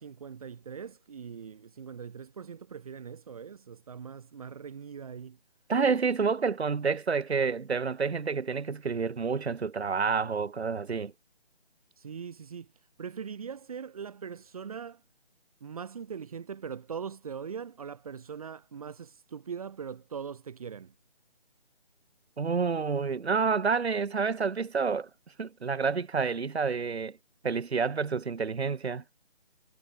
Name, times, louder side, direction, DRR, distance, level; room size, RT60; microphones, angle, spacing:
voice 1, 0.0-5.4 12.0-12.7 13.0-15.0 15.6-20.9, right 7 dB, 35° right, 3.5 m, -41 dB
voice 2, 5.7-11.1 22.4-25.1 25.4-27.2 27.4-29.0, right 5 dB, 80° right, 0.7 m, -29 dB
figure-of-eight pair, 155°, 32 cm